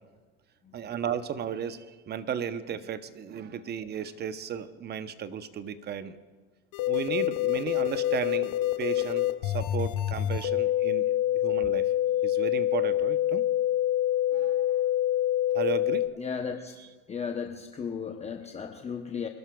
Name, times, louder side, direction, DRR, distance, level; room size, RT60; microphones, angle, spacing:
voice 1, 0.7-6.2 6.9-8.5 8.8-11.9 12.2-13.4 14.3-14.7 15.5-16.1, right 8 dB, 30° right, 12 dB, 0.8 m, -35 dB
sound 1, 6.7-16.1, left 13 dB, 60° left, 1.2 m, -26 dB
voice 2, 16.2-16.8 17.1-19.3, left 6 dB, 20° left, 4 dB, 0.7 m, -35 dB
26.5 x 12.5 x 2.3 m, 1.4 s
supercardioid pair, 110°, 35 cm